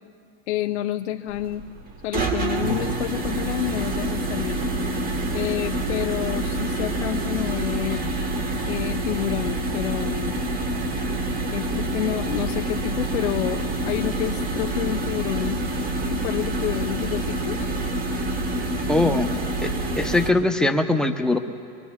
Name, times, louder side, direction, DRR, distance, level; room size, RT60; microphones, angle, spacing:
voice 1, 0.5-1.6 2.0-4.6 5.3-8.0 8.7-10.3 11.5-15.6 16.1-17.7 19.0-19.4, left 13 dB, 90° left, 5 dB, 0.6 m, -29 dB
sound 1, 1.3-20.3, right 2 dB, 25° right, 1.3 m, -27 dB
voice 2, 18.9-19.3 19.6-19.7 20.0-21.4, left 2 dB, ahead, 4 dB, 0.8 m, -21 dB
24.0 x 23.5 x 2.4 m, 2.4 s
supercardioid pair, 125°, 33 cm